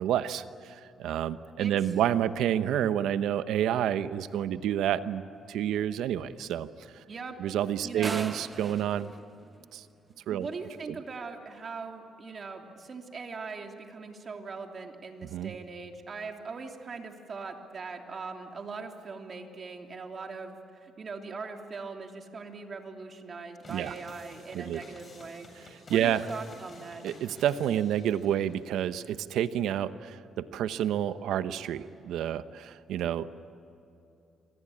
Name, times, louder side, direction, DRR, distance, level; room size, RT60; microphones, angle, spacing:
voice 1, 0.0-5.2 5.5-6.7 7.4-9.1 9.7-9.8 10.3-10.5 15.3-15.5 23.7-23.9 24.5-24.8 25.9-26.3 27.0-33.3, right 10 dB, 85° right, 12 dB, 0.9 m, -29 dB
voice 2, 7.1-7.4 7.8-8.4 10.3-25.5 25.9-27.0, right 4 dB, 45° right, 3 dB, 3.2 m, -40 dB
sound 1, 8.0-10.2, right 3 dB, 25° right, 1.2 m, -40 dB
sound 2, 23.6-28.6, left 2 dB, 35° left, 7.6 m, -52 dB
27.0 x 23.5 x 8.7 m, 2.7 s
cardioid pair, 90°, 0 cm